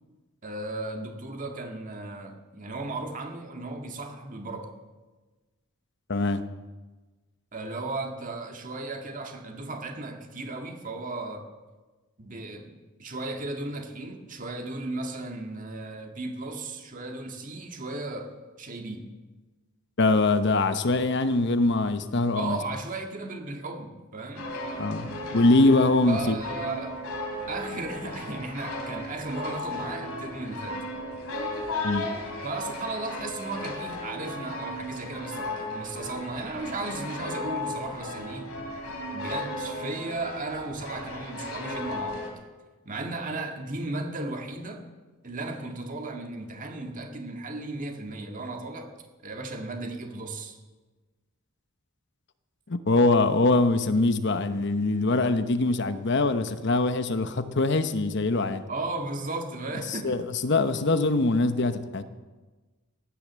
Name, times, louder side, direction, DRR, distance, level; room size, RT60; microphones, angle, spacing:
voice 1, 0.4-4.7 7.5-11.5 12.2-19.1 22.3-24.5 26.1-27.0 27.5-30.8 32.4-38.6 39.1-42.3 42.9-44.9 45.2-48.9 49.2-50.6 58.7-60.2, right 2 dB, 35° right, 3 dB, 1.8 m, -35 dB
voice 2, 6.1-6.4 20.0-22.6 24.8-26.3 31.8-32.1 52.7-58.6 60.0-62.0, left 2 dB, 55° left, 10 dB, 0.9 m, -23 dB
sound 1, 24.4-42.3, left 2 dB, 90° left, 3.1 m, -35 dB
15.5 x 10.0 x 7.5 m, 1.3 s
head